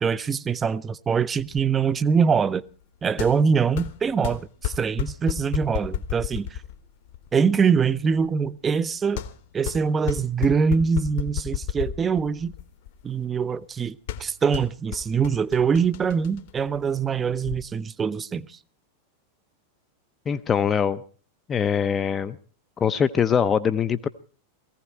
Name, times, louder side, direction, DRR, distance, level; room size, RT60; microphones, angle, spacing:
voice 1, 0.0-2.6 3.0-6.6 7.3-9.2 9.5-12.5 13.0-18.6, right 6 dB, 20° right, 0.6 m, -23 dB
sound 1, 1.4-17.6, left 10 dB, 50° left, 1.2 m, -34 dB
voice 2, 20.3-21.0 21.5-22.4 22.8-24.1, left 7 dB, 20° left, 0.6 m, -22 dB
18.0 x 15.5 x 4.4 m
figure-of-eight pair, 90°, 0 cm